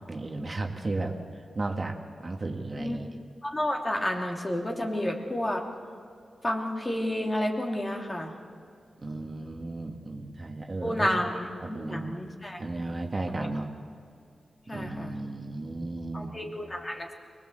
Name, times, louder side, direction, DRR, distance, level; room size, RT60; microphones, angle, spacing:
voice 1, 0.1-3.2 9.0-11.3 11.6-12.2 12.6-13.7 14.7-16.3, right 2 dB, 35° right, 3 dB, 1.9 m, -34 dB
voice 2, 3.4-5.6 6.4-8.3 10.8-12.6 13.4-13.5 14.7-15.1 16.1-17.1, left 1 dB, 25° left, 2 dB, 2.8 m, -30 dB
24.5 x 19.5 x 7.8 m, 2.3 s
cardioid pair, 75°, 0 cm